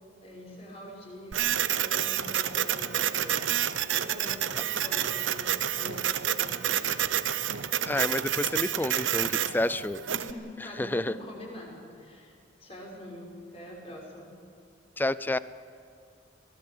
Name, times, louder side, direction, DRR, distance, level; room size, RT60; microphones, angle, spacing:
voice 1, 0.2-3.7 3.9-7.1 10.1-12.3 12.6-14.3, left 1 dB, 30° left, -2 dB, 5.7 m, -44 dB
Printer, 1.3-10.3, right 10 dB, 85° right, 0.8 m, -29 dB
voice 2, 7.9-10.0 10.8-11.1 15.0-15.4, left 1 dB, 10° left, 16 dB, 0.4 m, -29 dB
24.5 x 17.5 x 7.8 m, 2.3 s
head